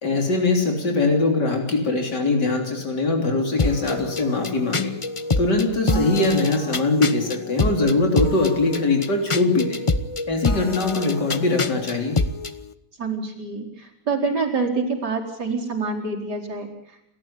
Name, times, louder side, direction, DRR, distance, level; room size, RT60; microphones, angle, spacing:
voice 1, 0.0-4.9 5.4-9.8 10.3-12.2, left 3 dB, 85° left, 3 dB, 4.0 m, -22 dB
sound 1, 3.6-12.6, left 3 dB, 25° left, 0.8 m, -26 dB
voice 2, 5.8-6.1 13.0-16.7, right 4 dB, 75° right, -1 dB, 5.2 m, -26 dB
28.5 x 13.5 x 8.6 m, 0.78 s
omnidirectional pair, 1.8 m